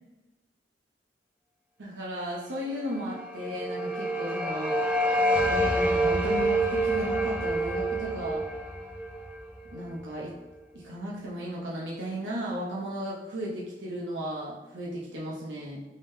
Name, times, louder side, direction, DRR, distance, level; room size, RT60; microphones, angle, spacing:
voice 1, 1.8-4.9 5.4-8.4 9.7-10.3 10.7-15.8, equal, 80° right, -5 dB, 0.7 m, -35 dB
sound 1, 3.1-10.1, right 1 dB, 10° right, 0.4 m, -27 dB
3.7 x 2.6 x 3.6 m, 1.1 s
head